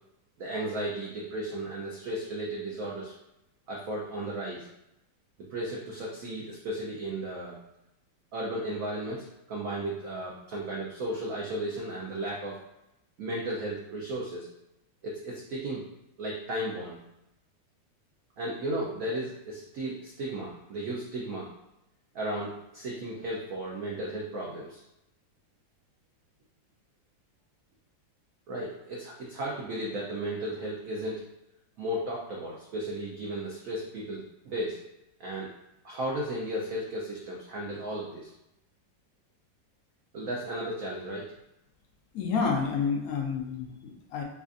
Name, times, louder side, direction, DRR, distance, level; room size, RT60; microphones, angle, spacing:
voice 1, 0.4-3.1 3.7-4.7 5.5-7.6 8.3-12.6 13.2-14.5 15.0-15.8 16.2-17.0 18.4-21.5 22.1-24.8 28.5-31.2 31.8-34.8 35.2-35.5 35.8-38.3 40.1-41.3, right 1 dB, 75° right, -3 dB, 0.7 m, -34 dB
voice 2, 42.1-44.2, left 5 dB, 80° left, 0 dB, 0.8 m, -29 dB
4.9 x 2.4 x 2.4 m, 0.88 s
omnidirectional pair, 2.1 m